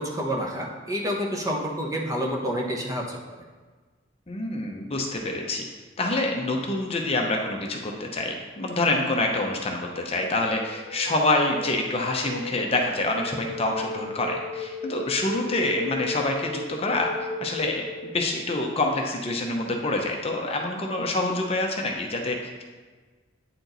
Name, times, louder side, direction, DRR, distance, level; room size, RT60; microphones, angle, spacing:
voice 1, 0.0-3.2, equal, 20° right, -1 dB, 0.9 m, -28 dB
voice 2, 4.3-5.6 6.0-17.1 17.4-22.6, left 2 dB, 30° left, 1 dB, 0.7 m, -26 dB
sound 1, 9.2-18.5, left 2 dB, 10° left, 1.3 m, -37 dB
9.1 x 4.4 x 3.9 m, 1.4 s
head